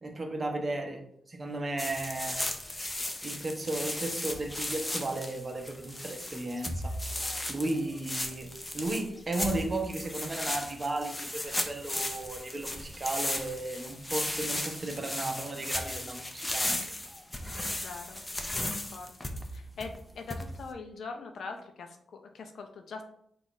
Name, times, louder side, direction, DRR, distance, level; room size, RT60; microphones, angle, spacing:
voice 1, 0.0-1.0 1.3-2.4 3.2-6.9 7.5-8.5 8.7-16.9, right 2 dB, 35° right, 3 dB, 0.8 m, -34 dB
sound 1, 1.8-20.7, left 1 dB, 20° left, 0.6 m, -36 dB
voice 2, 17.7-18.2 18.5-23.0, left 4 dB, 70° left, 5 dB, 0.6 m, -43 dB
3.9 x 2.4 x 4.0 m, 0.69 s
cardioid pair, 60°, 0 cm